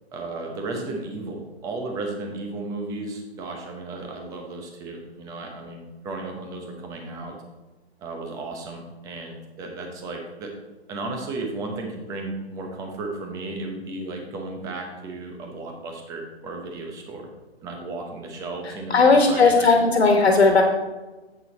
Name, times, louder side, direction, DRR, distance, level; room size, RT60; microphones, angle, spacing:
voice 1, 0.1-7.3 8.0-10.5 10.9-17.3 17.6-19.8, right 2 dB, 10° right, 2 dB, 0.8 m, -34 dB
voice 2, 18.9-20.6, left 4 dB, 70° left, 3 dB, 1.5 m, -16 dB
8.0 x 6.7 x 4.2 m, 1.2 s
hypercardioid pair, 145°, 33 cm